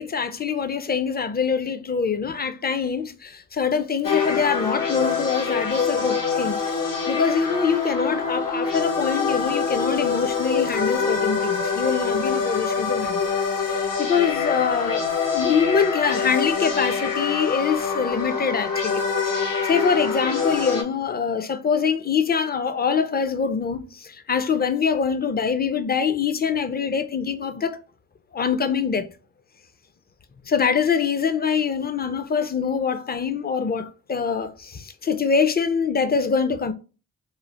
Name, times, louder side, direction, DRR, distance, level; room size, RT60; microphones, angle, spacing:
voice 1, 0.0-13.3 13.7-15.1 15.3-27.8 28.3-29.1 30.5-36.7, left 6 dB, 25° left, 0.4 m, -24 dB
sound 1, 4.0-20.8, left 5 dB, 65° left, 0.8 m, -25 dB
3.1 x 2.0 x 2.8 m
cardioid pair, 50°, 36 cm